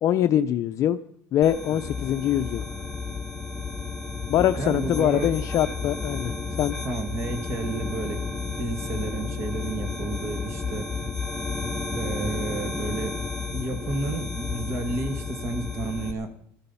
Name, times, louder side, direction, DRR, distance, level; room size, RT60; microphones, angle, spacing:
voice 1, 0.0-1.0 1.3-2.6 4.3-6.3 6.6-6.8, left 11 dB, 50° left, 10 dB, 0.5 m, -23 dB
sound 1, 1.4-16.1, left 4 dB, 5° left, 1.6 m, -32 dB
voice 2, 4.6-5.3 6.8-8.2 8.6-10.9 11.9-13.2 13.5-16.3, right 3 dB, 45° right, 8 dB, 1.9 m, -31 dB
17.0 x 13.5 x 5.6 m, 0.67 s
cardioid pair, 130°, 7 cm